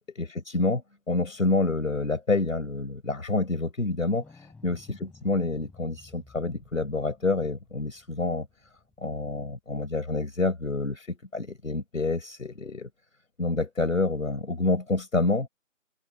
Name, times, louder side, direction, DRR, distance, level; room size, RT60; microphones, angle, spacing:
voice 1, 0.1-8.5 9.0-12.9 13.4-15.5, left 3 dB, 80° left, 4.2 m, -28 dB
sound 1, 4.1-9.6 12.6-12.7, left 3 dB, 5° left, 7.9 m, -55 dB
figure-of-eight pair, 160°, 40 cm